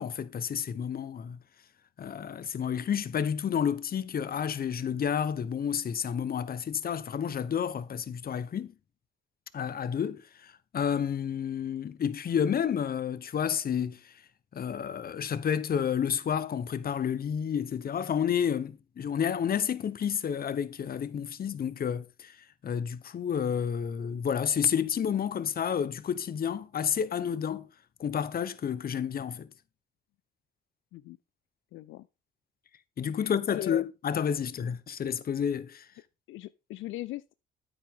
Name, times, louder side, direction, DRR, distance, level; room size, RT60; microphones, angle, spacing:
voice 1, 0.0-1.4 2.0-8.7 9.5-14.1 14.5-22.4 22.6-27.7 28.0-29.5 33.0-35.8, left 8 dB, 50° left, 1.0 m, -30 dB
voice 2, 31.7-32.1 33.2-33.8 34.6-34.7 36.3-37.3, left 16 dB, 85° left, 0.4 m, -39 dB
9.1 x 8.9 x 3.7 m
cardioid pair, 90°, 20 cm